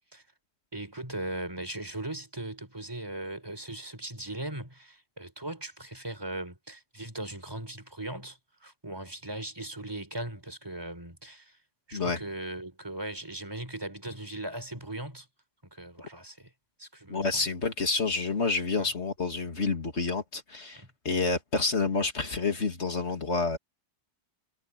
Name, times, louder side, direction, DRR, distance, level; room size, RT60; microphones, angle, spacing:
voice 1, 0.7-11.6 11.9-15.3 15.7-16.5 16.8-17.5 18.8-18.9 20.8-20.9, right 1 dB, 20° right, 4.3 m, -39 dB
voice 2, 17.1-23.6, left 4 dB, 65° left, 2.6 m, -29 dB
omnidirectional pair, 1.2 m